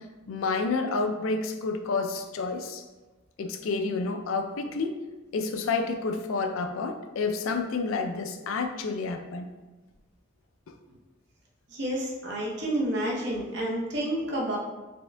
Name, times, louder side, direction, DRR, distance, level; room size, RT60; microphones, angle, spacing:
voice 1, 0.3-2.8 3.4-5.0 5.3-9.5, left 4 dB, 75° left, 6 dB, 0.4 m, -29 dB
voice 2, 11.7-14.6, right 1 dB, 55° right, -3 dB, 0.8 m, -29 dB
4.3 x 3.5 x 2.2 m, 1.2 s
head